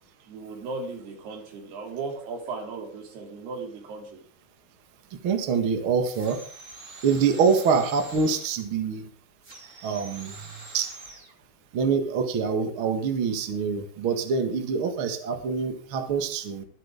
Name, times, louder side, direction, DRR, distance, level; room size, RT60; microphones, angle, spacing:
voice 1, 0.3-4.2, right 4 dB, 60° right, 3 dB, 4.6 m, -36 dB
voice 2, 5.2-6.4 7.0-9.0 9.8-10.3 10.7-10.9 11.7-16.6, right 5 dB, 80° right, 6 dB, 1.1 m, -25 dB
sound 1, 6.1-8.7 9.4-11.3, right 3 dB, 35° right, 1.2 m, -45 dB
23.0 x 8.3 x 3.6 m, 0.43 s
omnidirectional pair, 5.5 m